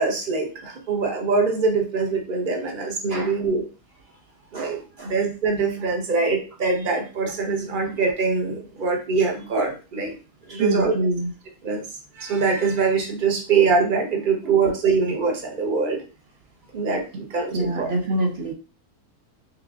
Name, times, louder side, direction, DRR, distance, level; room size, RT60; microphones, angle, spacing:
voice 1, 0.0-3.6 4.5-10.1 10.5-10.9 11.6-11.9 12.2-16.0 16.7-17.9, right 4 dB, 40° right, 2 dB, 1.0 m, -23 dB
voice 2, 4.5-5.1 10.5-11.3 14.6-14.7 17.5-18.5, right 2 dB, 65° right, 1 dB, 0.6 m, -25 dB
5.9 x 2.4 x 2.5 m, 0.34 s
omnidirectional pair, 1.7 m